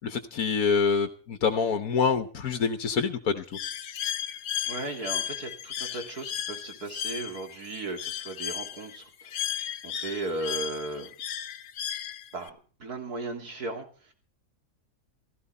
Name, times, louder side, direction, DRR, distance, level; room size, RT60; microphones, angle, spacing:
voice 1, 0.0-3.4, left 5 dB, 65° left, 8 dB, 1.5 m, -26 dB
Bird, 3.5-12.5, left 10 dB, 85° left, 1.5 m, -35 dB
voice 2, 4.7-9.5 9.8-11.1 12.3-14.1, right 3 dB, 75° right, 4 dB, 3.6 m, -36 dB
16.5 x 15.0 x 4.3 m, 0.39 s
omnidirectional pair, 1.7 m